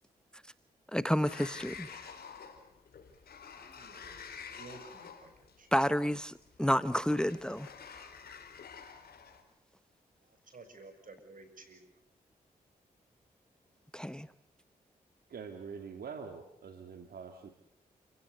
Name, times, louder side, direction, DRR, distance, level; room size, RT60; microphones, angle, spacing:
voice 1, 0.9-1.9 5.7-7.7 13.9-14.3, equal, 5° left, 1.1 m, -30 dB
Sliding door, 1.2-9.4, left 6 dB, 75° left, 4.3 m, -49 dB
voice 2, 3.7-4.2 4.6-5.3 5.6-5.7 10.5-11.8, right 3 dB, 55° right, 7.0 m, -52 dB
voice 3, 15.3-17.5, right 6 dB, 75° right, 2.5 m, -44 dB
29.0 x 17.0 x 8.2 m
supercardioid pair, 45°, 16 cm